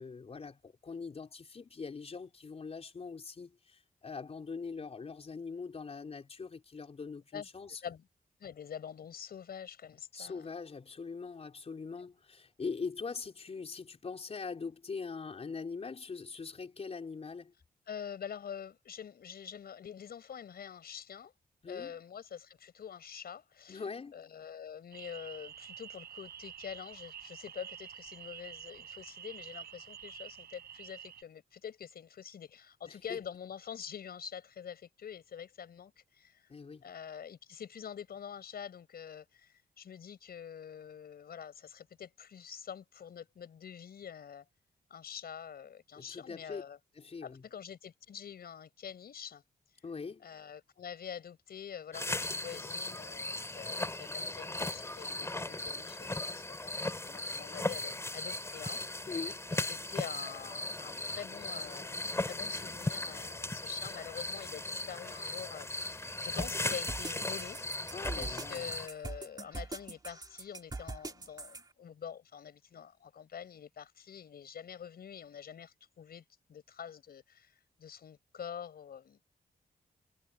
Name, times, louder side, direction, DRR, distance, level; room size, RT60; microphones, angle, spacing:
voice 1, 0.0-7.8 10.1-17.5 21.6-21.9 23.7-24.2 32.8-33.2 36.5-36.8 45.9-46.6 46.9-47.4 49.8-50.3 59.1-59.5 67.9-68.7, left 5 dB, 40° left, 4.6 m, -42 dB
voice 2, 7.3-8.0 8.4-10.5 17.9-21.3 21.7-23.8 24.1-36.5 36.8-44.4 44.9-46.8 47.2-49.4 50.2-59.1 59.7-67.6 68.2-76.2 76.5-79.2, left 8 dB, 75° left, 5.6 m, -46 dB
sound 1, 24.9-31.2, right 9 dB, 85° right, 6.0 m, -48 dB
sound 2, 51.9-68.9, left 2 dB, 15° left, 4.2 m, -37 dB
sound 3, 66.4-71.6, right 3 dB, 25° right, 2.7 m, -42 dB
wide cardioid pair, 140°, 16 cm